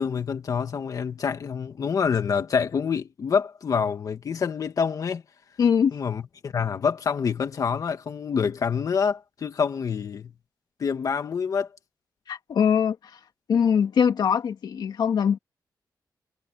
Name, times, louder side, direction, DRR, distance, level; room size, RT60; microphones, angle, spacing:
voice 1, 0.0-5.2 5.9-10.3 10.8-11.7, left 6 dB, 50° left, 2.0 m, -26 dB
voice 2, 5.6-5.9 12.3-13.0 13.5-15.4, left 7 dB, 75° left, 2.0 m, -22 dB
wide cardioid pair, 155°, 7 cm